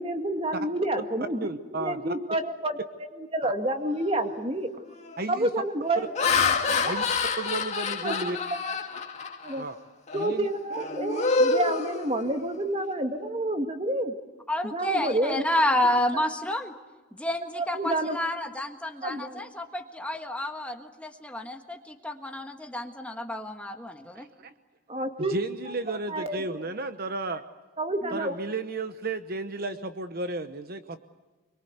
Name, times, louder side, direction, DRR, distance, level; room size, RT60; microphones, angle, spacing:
voice 1, 0.0-2.8 3.2-4.7 5.3-6.1 6.7-7.0 8.0-8.3 8.6-9.0 9.4-9.6 10.1-14.1 14.7-15.4 17.5-18.2 19.0-19.4 24.9-25.3 26.1-26.4 27.8-28.3, right 1 dB, 25° right, 6 dB, 2.1 m, -29 dB
voice 2, 1.4-2.1 3.4-3.5 5.2-5.5 6.9-7.0 7.4-8.4 9.6-9.8 10.1-10.5 24.1-24.5 25.2-27.4 28.1-31.0, right 2 dB, 45° right, 9 dB, 1.0 m, -33 dB
Laughter, 4.0-4.3 4.9-5.2 5.8-9.6 10.1-10.3 10.7-12.6, left 4 dB, 35° left, 2.3 m, -27 dB
voice 3, 14.5-16.7 17.1-24.3 28.0-28.2, left 1 dB, 5° left, 4 dB, 1.5 m, -30 dB
25.5 x 23.0 x 8.2 m, 1.3 s
head